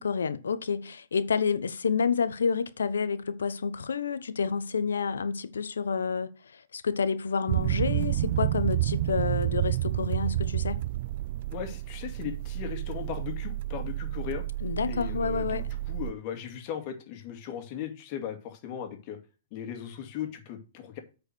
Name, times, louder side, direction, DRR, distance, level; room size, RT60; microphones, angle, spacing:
voice 1, 0.0-10.8 14.6-15.7, left 5 dB, 85° left, 0.9 m, -29 dB
sound 1, 7.5-16.1, right 15 dB, 50° right, 0.3 m, -30 dB
voice 2, 11.5-14.4 14.9-19.2 19.5-21.0, left 9 dB, 40° left, 2.3 m, -37 dB
8.5 x 4.8 x 6.2 m
hypercardioid pair, 135°, 0 cm